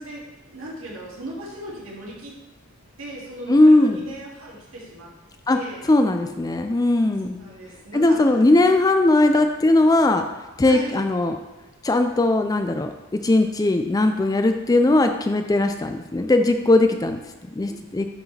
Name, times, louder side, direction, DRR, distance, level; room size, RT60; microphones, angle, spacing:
voice 1, 0.0-2.3 3.0-5.1 5.5-5.8 7.4-8.2 10.7-11.0, right 1 dB, 75° right, -5 dB, 2.3 m, -37 dB
voice 2, 3.5-4.0 5.5-5.6 5.9-7.4 7.9-10.2 10.6-11.4 11.8-12.9 13.2-17.2 17.6-18.1, left 2 dB, 15° left, 6 dB, 0.3 m, -18 dB
11.5 x 4.7 x 3.3 m, 1.0 s
head